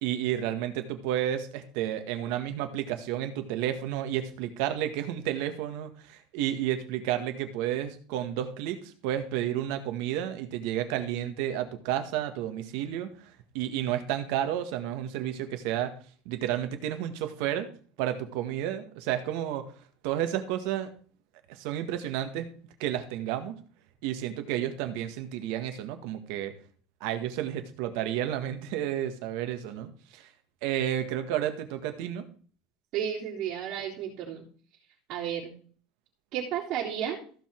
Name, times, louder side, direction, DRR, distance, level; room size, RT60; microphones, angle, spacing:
voice 1, 0.0-15.9 16.2-17.7 18.0-19.7 20.0-20.9 21.5-22.5 22.8-23.6 24.0-26.5 27.0-30.3 30.6-32.2, right 11 dB, 65° right, 8 dB, 1.6 m, -31 dB
voice 2, 32.9-34.4 35.1-35.5 36.3-37.2, right 9 dB, 45° right, -7 dB, 3.8 m, -32 dB
14.5 x 5.5 x 4.6 m, 0.43 s
cardioid pair, 155°, 0 cm